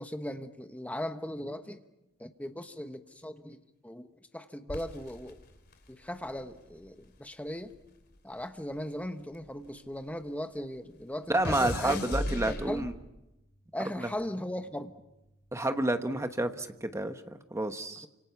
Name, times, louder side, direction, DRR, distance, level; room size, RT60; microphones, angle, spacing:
voice 1, 0.0-1.8 2.2-4.1 4.3-5.4 5.9-7.7 8.2-12.9 13.7-15.0 18.0-18.1, left 1 dB, 5° left, 8 dB, 1.1 m, -38 dB
sound 1, 4.7-7.2 7.5-10.1 10.4-13.2 13.9-14.3, left 1 dB, 50° left, 2.8 m, -38 dB
voice 2, 11.3-12.9 14.0-14.1 15.5-18.1, right 1 dB, 15° right, 8 dB, 1.2 m, -30 dB
29.5 x 26.0 x 5.9 m, 0.94 s
head